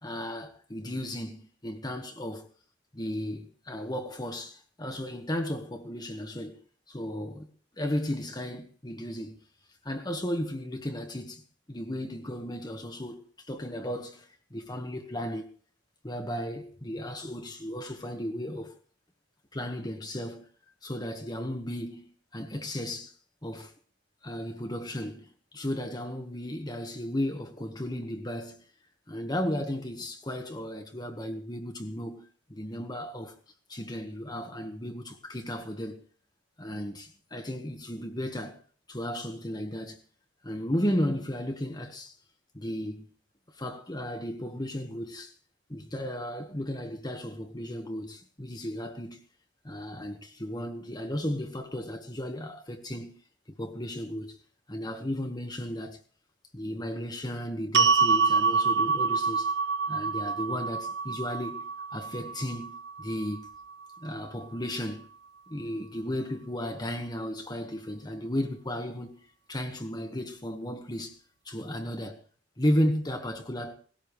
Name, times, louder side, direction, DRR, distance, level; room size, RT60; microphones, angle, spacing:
voice 1, 0.0-2.5 2.9-6.6 6.9-7.5 7.7-9.4 9.8-15.5 16.0-18.7 19.5-20.5 20.8-23.1 23.4-23.7 24.2-28.6 29.1-33.3 33.7-36.0 36.6-38.6 38.9-40.0 40.4-42.1 42.5-43.1 43.6-45.3 45.7-49.2 49.6-53.2 53.6-54.4 54.7-56.0 56.5-59.5 59.9-63.5 64.0-65.1 65.5-69.2 69.5-71.2 71.4-72.2 72.6-73.7, equal, 20° left, 1.6 m, -34 dB
sound 1, 57.7-64.0, right 5 dB, 60° right, 0.6 m, -27 dB
19.0 x 17.0 x 3.3 m
head